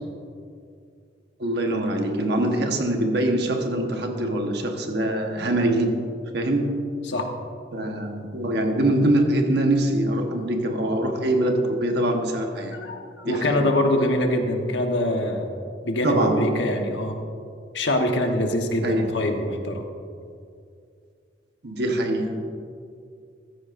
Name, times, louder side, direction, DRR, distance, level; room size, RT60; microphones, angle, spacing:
voice 1, 1.4-6.0 6.3-6.9 7.7-12.8 13.2-13.6 16.0-16.7 18.8-19.2 21.6-22.5, right 1 dB, 60° right, 3 dB, 1.2 m, -23 dB
voice 2, 12.7-15.5 15.8-17.1 17.7-19.8, left 1 dB, 75° left, 3 dB, 1.2 m, -24 dB
14.5 x 14.5 x 2.6 m, 2.4 s
head